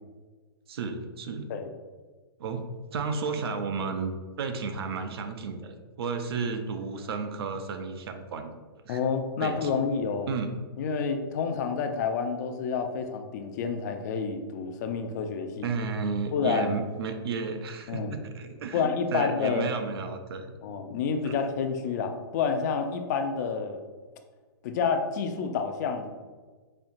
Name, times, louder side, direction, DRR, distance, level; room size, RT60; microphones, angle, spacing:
voice 1, 0.7-1.5 2.4-2.7 2.9-8.5 8.8-9.0 9.4-9.7 10.3-10.5 15.6-18.8 19.1-20.5 21.2-21.3 21.8-21.9, right 4 dB, 75° right, 6 dB, 0.5 m, -33 dB
voice 2, 8.9-10.3 10.8-15.7 16.3-16.7 17.9-18.2 18.7-19.7 20.6-23.8 24.6-26.1, left 5 dB, 45° left, 6 dB, 0.4 m, -29 dB
4.3 x 2.7 x 2.5 m, 1.4 s
hypercardioid pair, 150°, 13 cm